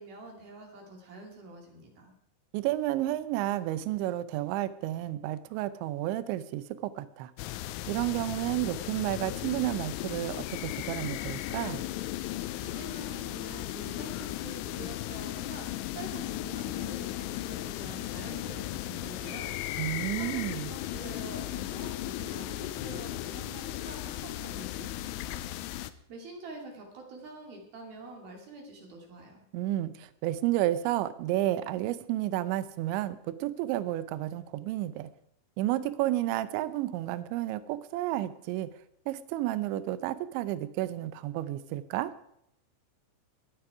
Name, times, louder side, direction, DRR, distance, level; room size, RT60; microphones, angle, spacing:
voice 1, 0.0-2.1 12.6-19.5 20.2-25.4 26.1-29.4, right 2 dB, 55° right, 1 dB, 3.9 m, -46 dB
voice 2, 2.5-7.3 7.9-11.8 19.8-20.7 29.5-35.1 35.6-38.7 39.1-42.1, right 14 dB, 80° right, 14 dB, 2.9 m, -31 dB
sound 1, 7.4-25.9, left 15 dB, 85° left, 3.1 m, -36 dB
21.5 x 8.8 x 4.8 m, 0.74 s
omnidirectional pair, 5.7 m